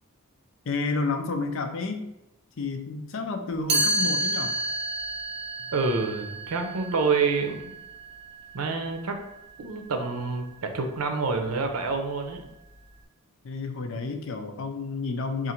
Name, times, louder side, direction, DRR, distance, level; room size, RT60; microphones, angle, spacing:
voice 1, 0.7-2.1 2.6-4.6 13.4-15.5, left 3 dB, 60° left, 7 dB, 0.5 m, -30 dB
Chime, 3.7-9.5, right 2 dB, 25° right, 0.7 m, -30 dB
voice 2, 5.7-7.6 8.5-9.2 9.6-12.5, right 4 dB, 80° right, 5 dB, 0.6 m, -27 dB
3.8 x 2.5 x 4.3 m, 0.89 s
head